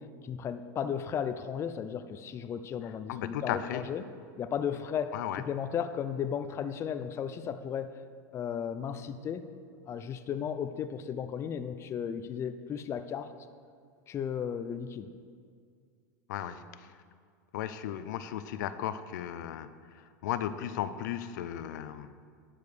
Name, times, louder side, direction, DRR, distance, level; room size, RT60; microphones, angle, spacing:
voice 1, 0.0-4.0 4.4-7.9 8.3-9.5 9.9-13.3 14.1-15.1, left 8 dB, 25° left, 10 dB, 0.5 m, -35 dB
voice 2, 3.1-3.8 5.1-5.4 16.3-16.9 17.5-22.2, left 10 dB, 75° left, 12 dB, 0.5 m, -36 dB
10.5 x 5.3 x 6.6 m, 2.1 s
supercardioid pair, 120°, 10 cm